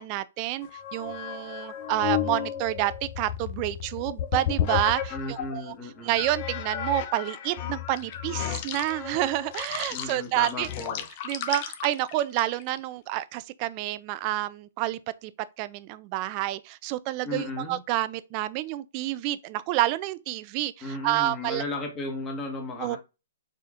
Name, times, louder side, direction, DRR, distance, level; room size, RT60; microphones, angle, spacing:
voice 1, 0.0-5.7 6.0-10.7 11.2-15.3 15.6-21.6 22.8-23.0, right 15 dB, 35° right, 0.3 m, -29 dB
sound 1, 0.6-5.6 6.1-12.8, left 10 dB, 40° left, 0.6 m, -33 dB
voice 2, 5.1-6.2 9.9-11.0 17.2-17.8 20.8-23.0, left 2 dB, 20° left, 1.3 m, -35 dB
4.2 x 3.4 x 2.5 m
hypercardioid pair, 140°, 0 cm